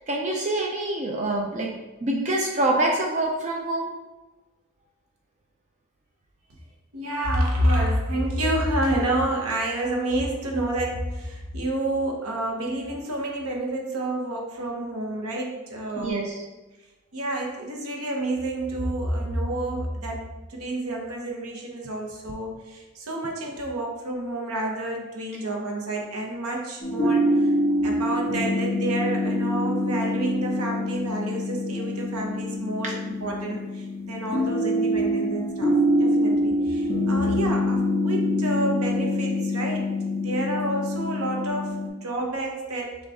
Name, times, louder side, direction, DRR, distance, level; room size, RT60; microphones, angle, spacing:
voice 1, 0.0-1.7 2.0-3.9 16.0-16.3 32.8-32.9, right 2 dB, 35° right, 0 dB, 0.4 m, -25 dB
voice 2, 6.9-16.3 17.1-27.5 27.8-43.0, right 1 dB, 85° right, 1 dB, 0.9 m, -29 dB
sound 1, 26.8-41.9, left 1 dB, 25° left, 1.4 m, -25 dB
6.0 x 2.4 x 3.5 m, 1.1 s
head